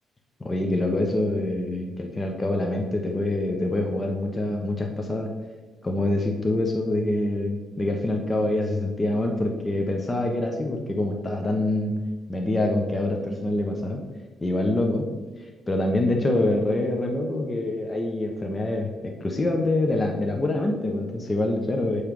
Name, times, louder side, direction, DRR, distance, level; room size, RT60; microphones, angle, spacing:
voice 1, 0.4-5.3 5.8-11.9 12.3-14.0 14.4-15.1 15.7-22.0, left 1 dB, 25° left, 2 dB, 0.8 m, -25 dB
7.5 x 3.3 x 5.3 m, 1.2 s
cardioid pair, 90°, 0 cm